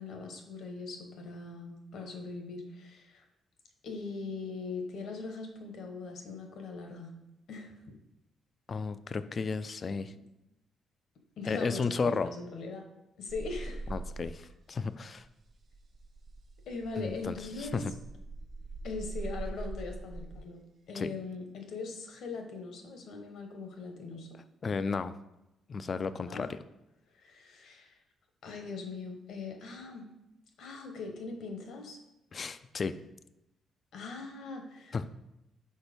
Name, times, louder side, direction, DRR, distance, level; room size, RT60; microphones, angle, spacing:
voice 1, 0.0-3.2 3.8-7.1 7.5-7.8 11.4-12.8 13.2-13.8 16.7-17.8 18.8-20.6 20.9-24.4 26.3-26.5 27.1-27.9 28.4-30.1 30.6-32.0 33.9-34.9, left 3 dB, 70° left, 4 dB, 1.1 m, -41 dB
voice 2, 8.7-10.1 11.5-12.3 13.9-15.2 17.0-17.9 20.9-21.1 24.6-25.1 25.7-26.6 32.3-32.9 34.9-35.0, left 4 dB, 40° left, 13 dB, 0.3 m, -33 dB
sound 1, 13.3-14.7 15.0-20.4 22.1-22.6, right 2 dB, 50° right, 0.6 m, -42 dB
4.5 x 4.1 x 5.2 m, 0.90 s
cardioid pair, 90°, 0 cm